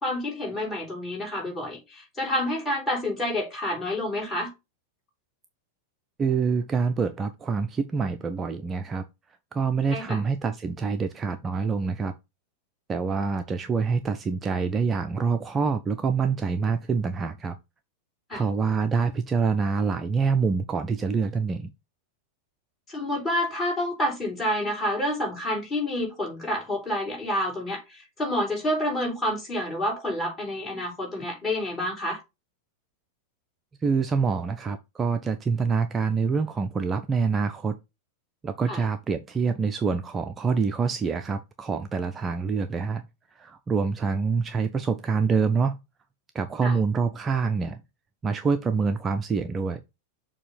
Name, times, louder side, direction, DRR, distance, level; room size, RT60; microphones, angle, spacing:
voice 1, 0.0-4.5 9.9-10.2 18.3-18.5 22.9-32.2 38.7-38.8 46.6-46.8, left 1 dB, 20° left, 3.4 m, -28 dB
voice 2, 6.2-9.0 9.5-12.1 12.9-17.6 18.3-21.7 33.8-37.8 38.4-43.0 43.3-45.8 46.3-47.8 48.2-49.8, right 5 dB, 20° right, 0.5 m, -26 dB
6.8 x 2.8 x 5.2 m
figure-of-eight pair, 90°, 0 cm